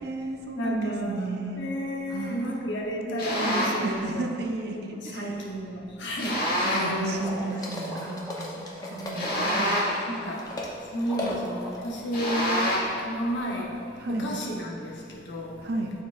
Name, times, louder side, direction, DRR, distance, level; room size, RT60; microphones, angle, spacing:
voice 1, 0.0-1.7 2.1-5.3 6.8-9.8 14.0-14.3 15.6-15.9, right 2 dB, 55° right, 3 dB, 0.5 m, -34 dB
voice 2, 0.6-1.3 1.6-4.3 4.7-7.5 8.8-9.7 10.2-10.5 10.9-13.7 14.1-15.5, equal, 70° left, -2 dB, 1.0 m, -32 dB
sound 1, 3.2-3.9 6.2-7.0 9.1-10.1 12.1-13.0, equal, 50° left, 1.6 m, -27 dB
sound 2, 7.1-12.2, equal, 5° right, 1.6 m, -42 dB
sound 3, 7.4-10.7 11.0-12.4, left 1 dB, 20° left, 0.7 m, -36 dB
11.5 x 4.5 x 2.5 m, 2.4 s
head